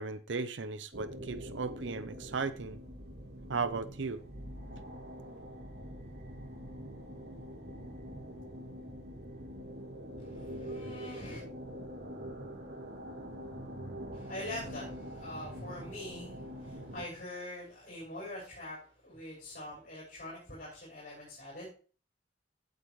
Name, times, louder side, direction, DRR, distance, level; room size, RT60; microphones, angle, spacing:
voice 1, 0.0-2.8 3.5-4.2, right 4 dB, 80° right, 0.7 m, -36 dB
sound 1, 0.9-17.1, equal, 60° right, 2.6 m, -44 dB
voice 2, 10.2-11.4 14.1-21.7, left 1 dB, 45° left, 6.0 m, -44 dB
15.5 x 8.2 x 3.2 m
head